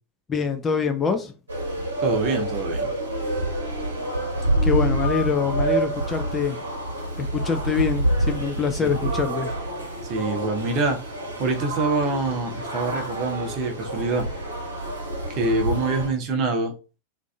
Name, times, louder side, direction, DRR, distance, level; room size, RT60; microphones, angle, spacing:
voice 1, 0.3-1.3 4.6-6.6 7.2-9.5, left 6 dB, 20° left, 0.3 m, -25 dB
sound 1, 1.5-16.1, right 1 dB, 75° right, 0.9 m, -27 dB
voice 2, 2.0-2.9 8.8-8.9 10.1-11.0 11.4-14.3 15.3-16.7, right 3 dB, 40° right, 0.7 m, -25 dB
2.5 x 2.3 x 2.2 m
figure-of-eight pair, 90°, 0 cm